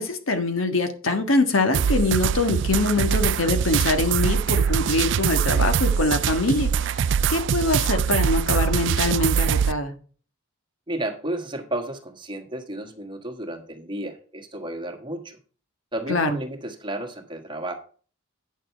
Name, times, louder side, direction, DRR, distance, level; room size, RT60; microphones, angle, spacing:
voice 1, 0.0-9.9 16.1-16.4, left 2 dB, 80° left, 7 dB, 1.6 m, -24 dB
sound 1, 1.7-9.7, right 7 dB, 60° right, 0.3 m, -23 dB
voice 2, 10.9-15.4 15.9-17.7, right 1 dB, 25° right, 5 dB, 1.5 m, -32 dB
9.2 x 6.5 x 4.5 m, 0.40 s
head